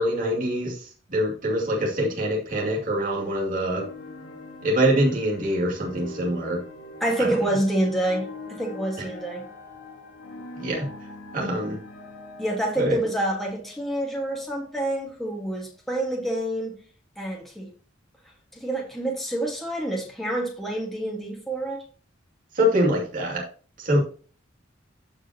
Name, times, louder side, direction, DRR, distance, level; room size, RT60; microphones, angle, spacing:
voice 1, 0.0-3.8 4.6-6.6 7.2-7.3 10.6-10.9 11.3-11.8 12.8-13.0 22.5-23.4 23.8-24.0, equal, 45° right, -3 dB, 2.5 m, -24 dB
sound 1, 3.7-14.9, left 2 dB, 75° left, 1.5 m, -43 dB
voice 2, 7.0-9.4 12.4-16.8 17.2-17.7 18.5-21.8, right 1 dB, ahead, -1 dB, 1.6 m, -27 dB
13.5 x 5.0 x 2.9 m, 0.40 s
head